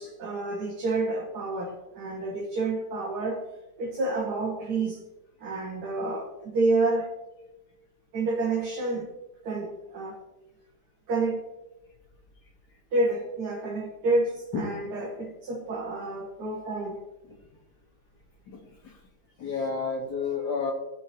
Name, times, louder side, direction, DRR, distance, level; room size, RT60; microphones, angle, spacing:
voice 1, 0.0-3.4 3.8-5.0 5.4-7.1 8.1-9.1 9.4-10.2 11.1-11.4 12.9-17.0, right 2 dB, 75° right, -2 dB, 1.8 m, -29 dB
voice 2, 12.4-12.8 14.5-14.8 16.7-16.8 17.3-17.4 18.5-19.0 19.4-20.7, left 5 dB, 85° left, -2 dB, 2.0 m, -32 dB
16.5 x 6.6 x 2.9 m, 1.0 s
omnidirectional pair, 1.8 m